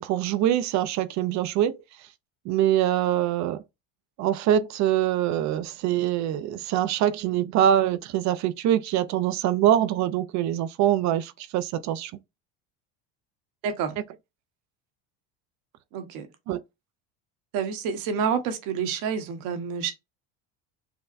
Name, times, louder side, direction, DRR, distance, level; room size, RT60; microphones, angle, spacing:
voice 1, 0.0-1.8 2.5-3.6 4.2-12.1 16.5-16.6, right 11 dB, 50° right, 0.4 m, -24 dB
voice 2, 13.6-14.0 15.9-16.3 17.5-19.9, right 7 dB, 65° right, 1.1 m, -28 dB
5.5 x 2.1 x 2.5 m
supercardioid pair, 115°, 37 cm